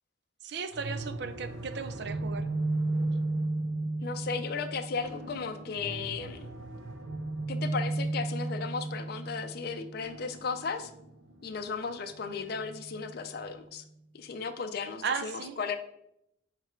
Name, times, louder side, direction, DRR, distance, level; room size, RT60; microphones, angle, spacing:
voice 1, 0.4-2.5 15.0-15.6, right 5 dB, 60° right, 10 dB, 0.5 m, -36 dB
sound 1, 0.7-13.5, right 2 dB, 85° right, 0.8 m, -35 dB
voice 2, 4.0-6.5 7.5-10.9 11.4-13.8 14.1-15.8, left 5 dB, 50° left, 8 dB, 0.4 m, -35 dB
6.7 x 3.3 x 4.5 m, 0.77 s
head